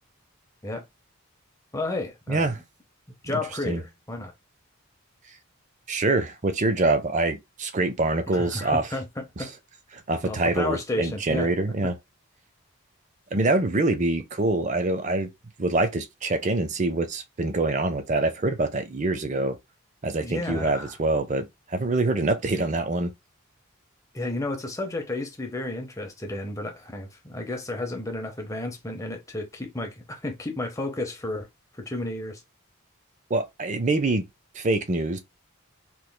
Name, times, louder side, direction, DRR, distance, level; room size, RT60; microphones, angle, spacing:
voice 1, 1.7-2.5 3.2-4.3 8.3-9.5 10.2-11.5 11.8-11.9 20.2-20.9 24.1-31.5 31.7-32.4, left 2 dB, 15° left, 0.7 m, -32 dB
voice 2, 2.3-2.6 3.6-3.8 5.9-8.9 10.1-12.0 13.3-15.3 15.6-19.6 20.0-23.1 33.3-34.3 34.5-35.2, right 2 dB, 35° right, 0.5 m, -25 dB
3.6 x 3.0 x 2.2 m
head